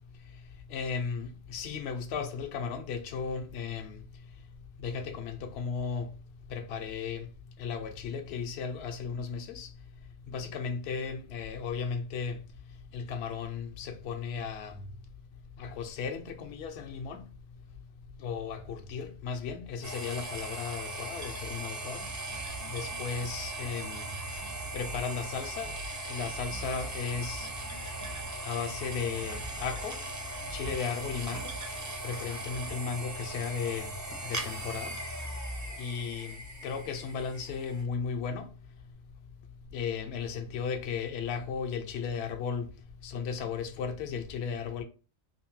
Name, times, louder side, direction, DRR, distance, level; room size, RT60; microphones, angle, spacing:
voice 1, 0.7-4.0 4.8-6.1 6.5-7.3 7.6-9.7 10.3-12.4 12.9-14.7 15.6-17.2 18.2-22.0 22.7-24.1 24.7-25.7 26.1-27.5 28.4-29.9 30.5-31.5 32.0-33.9 34.2-35.0 35.8-36.4 36.6-38.5 39.7-42.7 43.0-44.8, left 6 dB, 70° left, 0.8 m, -35 dB
sound 1, 19.8-37.8, right 1 dB, 25° right, 0.4 m, -39 dB
sound 2, 22.0-23.5 23.8-25.0 25.6-25.9 26.2-28.3 28.6-29.8 30.4-30.7 31.0-31.6, right 5 dB, 75° right, 0.9 m, -46 dB
2.8 x 2.6 x 3.0 m
omnidirectional pair, 1.2 m